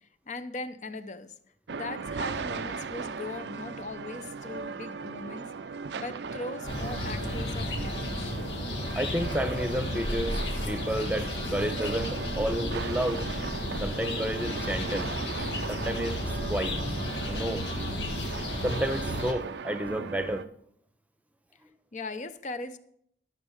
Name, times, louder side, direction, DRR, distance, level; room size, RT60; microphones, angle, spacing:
voice 1, 0.0-1.3 1.7-5.5 5.9-8.3 21.9-22.8, left 2 dB, 45° left, 11 dB, 0.7 m, -39 dB
sound 1, 1.7-20.5, right 5 dB, 80° right, 0.5 m, -38 dB
sound 2, 6.6-19.3, left 1 dB, 90° left, 1.6 m, -33 dB
voice 2, 9.0-10.4 10.7-13.2 13.8-15.1 15.7-16.2 16.5-16.8 17.2-17.6 18.6-20.5, equal, 10° right, 9 dB, 0.8 m, -31 dB
13.0 x 6.5 x 6.4 m, 0.69 s
head